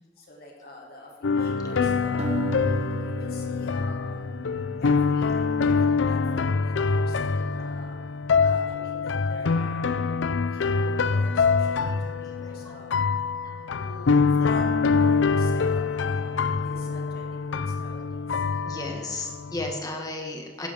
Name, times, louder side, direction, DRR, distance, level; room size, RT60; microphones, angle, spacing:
voice 1, 0.2-4.2 4.8-8.0 8.4-13.0 13.6-18.4 19.4-19.5, left 1 dB, 55° left, -2 dB, 2.9 m, -46 dB
sound 1, 1.2-19.8, left 4 dB, 85° left, 0.5 m, -25 dB
sound 2, 2.2-5.4, right 4 dB, 35° right, 1.1 m, -35 dB
voice 2, 12.4-12.8 13.4-13.6 18.6-20.7, left 2 dB, 20° left, 2 dB, 1.6 m, -34 dB
15.5 x 10.5 x 3.6 m, 1.3 s
head